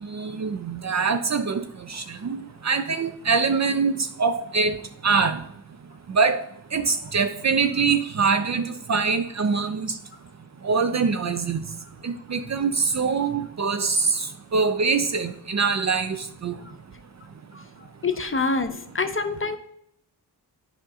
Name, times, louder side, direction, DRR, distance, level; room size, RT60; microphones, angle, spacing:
voice 1, 0.0-4.8 5.0-5.4 6.1-6.4 6.7-10.0 10.6-11.6 12.0-16.6, right 5 dB, 40° right, 10 dB, 0.5 m, -24 dB
voice 2, 18.0-19.6, left 4 dB, 30° left, 8 dB, 0.7 m, -26 dB
8.6 x 5.1 x 2.7 m, 0.73 s
cardioid pair, 45°, 45 cm